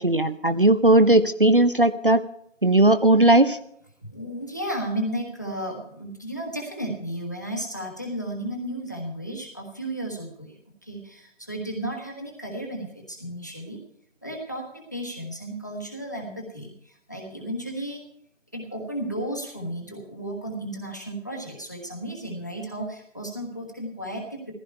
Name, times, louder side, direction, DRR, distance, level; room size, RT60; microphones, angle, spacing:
voice 1, 0.0-2.2 2.6-3.6, right 1 dB, 45° right, 12 dB, 0.6 m, -17 dB
voice 2, 4.0-10.6 10.8-13.8 14.2-18.0 18.5-24.5, right 1 dB, 15° left, 2 dB, 1.3 m, -34 dB
15.5 x 15.0 x 4.5 m, 0.68 s
figure-of-eight pair, 175°, 37 cm